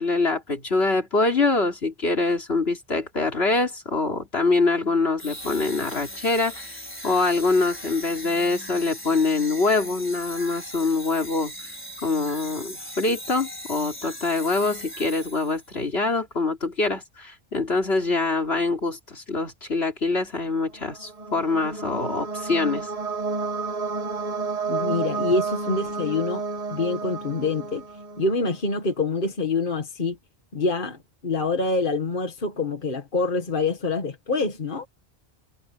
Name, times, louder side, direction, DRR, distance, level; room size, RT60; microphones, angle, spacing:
voice 1, 0.0-11.5 12.0-22.9, left 3 dB, 80° left, 3.6 m, -24 dB
sound 1, 5.2-15.7, equal, 10° left, 4.8 m, -39 dB
sound 2, 20.8-28.5, right 4 dB, 35° right, 1.4 m, -31 dB
voice 2, 24.7-26.4 26.7-27.8 28.2-30.2 30.5-34.9, left 3 dB, 55° left, 2.0 m, -26 dB
omnidirectional pair, 1.0 m